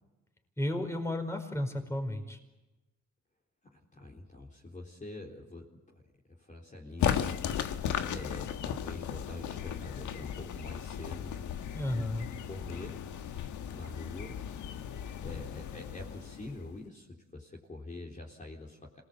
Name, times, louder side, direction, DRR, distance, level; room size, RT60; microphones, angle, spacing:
voice 1, 0.6-2.4 11.7-12.3, left 1 dB, 10° left, 5 dB, 5.0 m, -33 dB
voice 2, 3.7-6.0 6.3-11.4 11.9-13.0 13.7-14.4 15.2-19.0, left 2 dB, 25° left, -2 dB, 3.9 m, -45 dB
sound 1, 7.0-16.8, left 9 dB, 75° left, 1.5 m, -36 dB
26.5 x 19.0 x 8.3 m, 1.1 s
cardioid pair, 90°, 30 cm